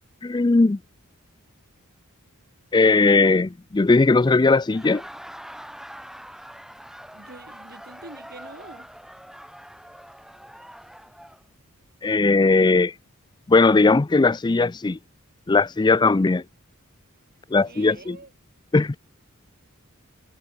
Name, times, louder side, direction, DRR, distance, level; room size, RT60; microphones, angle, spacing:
voice 1, 0.2-0.8 2.7-5.0 12.0-12.9 13.5-15.0 15.5-16.4 17.5-18.2 18.7-19.0, left 3 dB, 20° left, 0.4 m, -18 dB
Laughter, 4.6-11.4, equal, ahead, 8.0 m, -43 dB
voice 2, 7.1-8.9 17.6-18.3 18.8-19.0, right 2 dB, 45° right, 5.0 m, -45 dB
head